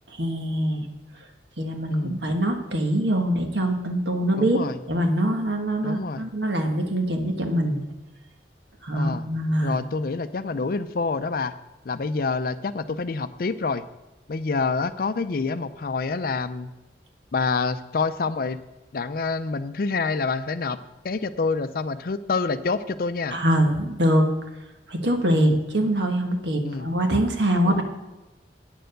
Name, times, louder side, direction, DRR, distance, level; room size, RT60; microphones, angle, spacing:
voice 1, 0.1-0.9 1.6-4.6 4.9-7.8 8.8-9.8 23.3-24.3 24.9-27.8, right 1 dB, 85° right, 4 dB, 1.4 m, -23 dB
voice 2, 1.9-2.2 4.3-4.8 5.8-6.3 8.9-9.3 9.6-11.5 11.9-13.8 14.3-16.7 17.3-18.6 18.9-20.8 21.0-23.4 25.4-25.6 26.6-26.9 27.6-27.8, left 4 dB, 55° left, 12 dB, 0.5 m, -27 dB
9.0 x 6.8 x 6.5 m, 1.0 s
head